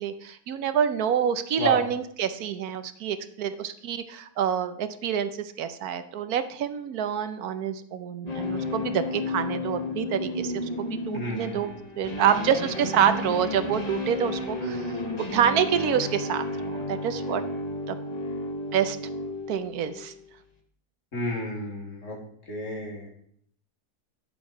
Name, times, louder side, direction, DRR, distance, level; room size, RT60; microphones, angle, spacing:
voice 1, 0.0-11.7 12.0-14.9 15.3-17.4 17.9-18.0 18.7-19.0 19.5-20.1, right 8 dB, 75° right, 11 dB, 1.2 m, -27 dB
sound 1, 8.3-20.2, left 2 dB, 25° left, 1.4 m, -32 dB
voice 2, 11.1-11.7 21.1-22.2 22.5-23.1, left 1 dB, 55° left, -3 dB, 3.2 m, -31 dB
10.5 x 7.4 x 4.8 m, 0.67 s
omnidirectional pair, 1.6 m